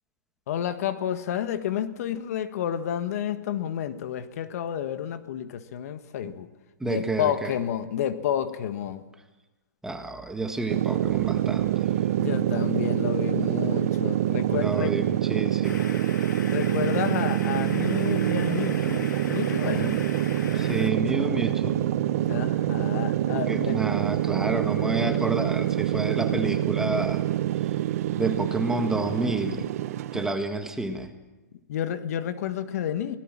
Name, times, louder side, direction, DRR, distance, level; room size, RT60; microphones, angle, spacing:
voice 1, 0.5-6.5 6.8-9.0 12.2-15.0 16.5-20.0 22.2-23.8 31.7-33.2, left 10 dB, 55° left, 10 dB, 1.6 m, -30 dB
voice 2, 6.8-7.5 9.8-11.9 14.5-15.9 19.8-20.0 20.5-21.8 23.3-27.2 28.1-29.7 30.1-31.1, right 2 dB, 5° right, 6 dB, 1.6 m, -29 dB
sound 1, 10.7-30.3, right 13 dB, 50° right, 0.8 m, -26 dB
sound 2, 15.6-20.9, left 6 dB, 80° left, 2.3 m, -40 dB
25.5 x 18.0 x 7.4 m, 1.1 s
hypercardioid pair, 140°, 10 cm